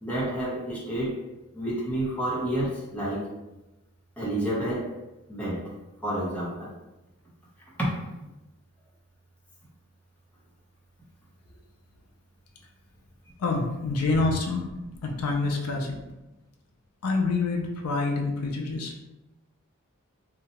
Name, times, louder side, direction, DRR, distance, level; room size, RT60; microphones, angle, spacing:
voice 1, 0.0-1.2 1.5-3.3 4.2-4.9 5.3-5.7 6.0-6.7 7.8-8.0, right 1 dB, 5° left, -7 dB, 0.7 m, -29 dB
voice 2, 13.4-14.6 15.0-15.9 17.0-18.9, left 3 dB, 75° left, 1 dB, 0.4 m, -26 dB
2.7 x 2.2 x 2.8 m, 1.0 s
head